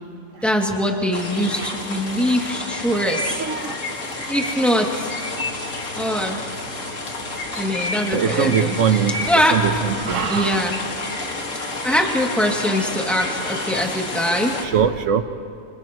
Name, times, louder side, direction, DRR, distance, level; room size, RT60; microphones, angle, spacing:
voice 1, 0.4-3.4 4.3-5.1 5.9-6.4 7.6-9.0 9.2-9.7 10.2-10.8 11.8-14.5, equal, ahead, -1 dB, 2.5 m, -22 dB
sound 1, 1.1-14.7, left 2 dB, 85° left, 2.4 m, -29 dB
voice 2, 2.9-3.7 8.1-9.2 9.5-10.6 14.6-15.2, right 7 dB, 85° right, 8 dB, 1.4 m, -22 dB
30.0 x 29.5 x 3.1 m, 2.7 s
omnidirectional pair, 1.3 m